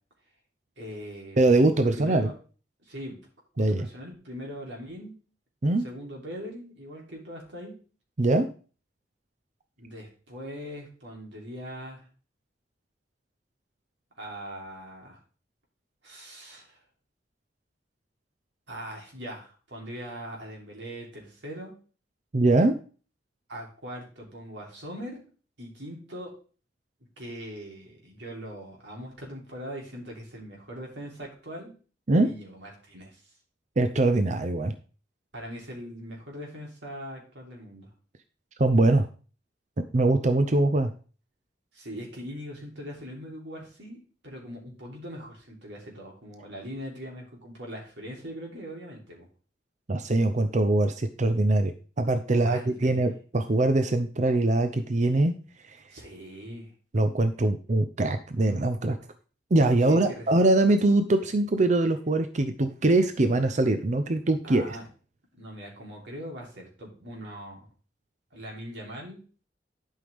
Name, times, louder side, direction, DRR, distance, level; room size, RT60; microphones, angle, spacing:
voice 1, 0.8-1.4 1.7-2.3 2.8-3.2 3.6-5.1 5.8-7.7 9.8-12.0 14.2-15.2 16.0-16.8 18.7-21.7 23.5-25.2 25.6-26.3 27.2-31.7 32.2-33.2 35.3-37.9 41.7-44.0 44.2-49.3 52.3-53.0 55.9-56.7 59.9-60.3 64.4-64.8 65.3-67.7 68.3-69.2, equal, 85° right, -1 dB, 3.2 m, -41 dB
voice 2, 1.4-2.3 3.6-3.9 5.6-5.8 8.2-8.5 22.3-22.7 32.1-32.3 33.8-34.7 38.6-39.1 39.9-40.9 49.9-55.3 55.7-55.8 56.9-59.0 59.5-64.8, right 2 dB, 45° right, 9 dB, 0.6 m, -23 dB
11.5 x 5.5 x 3.5 m, 0.38 s
head